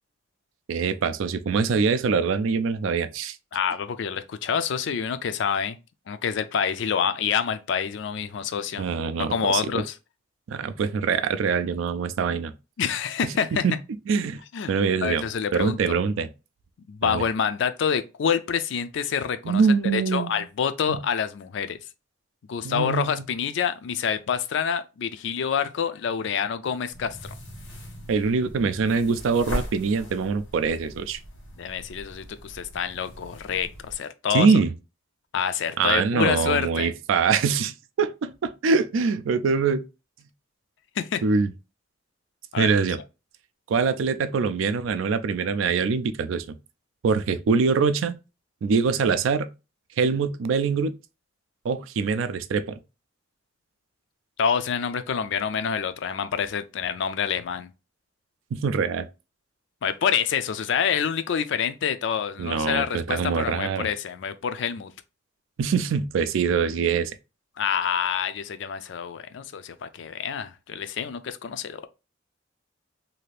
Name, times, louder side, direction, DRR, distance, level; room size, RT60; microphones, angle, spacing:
voice 1, 0.7-3.4 8.8-9.8 10.5-12.5 13.2-13.8 14.1-14.4 14.7-15.3 15.5-16.3 17.0-17.2 19.4-20.4 20.9-21.0 22.6-23.2 28.1-31.2 34.3-34.7 35.8-39.8 41.2-41.5 42.6-43.0 43.7-46.5 47.0-48.1 48.6-49.5 50.0-50.9 51.6-52.8 58.5-59.1 62.4-63.9 65.6-67.1, right 5 dB, 80° right, 0.4 m, -24 dB
voice 2, 3.5-5.8 6.1-8.8 9.3-9.9 12.8-13.6 14.5-14.7 15.0-16.0 16.9-19.6 19.9-21.8 22.5-27.2 31.6-34.5 35.3-36.9 41.0-41.2 42.5-42.7 54.4-57.7 59.8-64.9 67.6-71.8, left 7 dB, 65° left, 0.4 m, -27 dB
sound 1, 26.9-33.9, equal, 90° left, 1.2 m, -39 dB
2.7 x 2.4 x 3.2 m
head